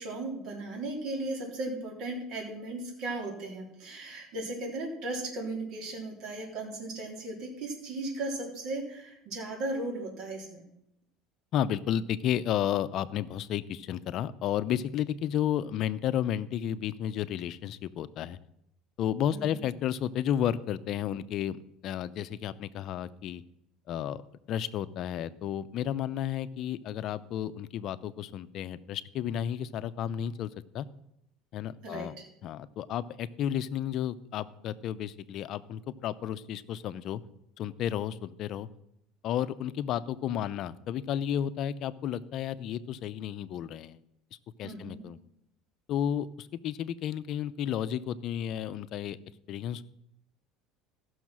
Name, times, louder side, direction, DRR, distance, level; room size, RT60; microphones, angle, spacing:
voice 1, 0.0-10.6 19.3-19.6 31.8-32.3 44.6-45.0, right 2 dB, 60° right, -1 dB, 3.7 m, -36 dB
voice 2, 11.5-18.4 19.0-21.6 21.8-23.4 23.9-24.2 24.5-30.9 31.5-32.2 32.4-37.2 37.6-38.7 39.2-44.0 44.6-45.2 45.9-49.2 49.5-49.8, left 10 dB, 50° left, 14 dB, 0.6 m, -32 dB
15.0 x 6.3 x 6.2 m, 0.80 s
cardioid pair, 130°, 0 cm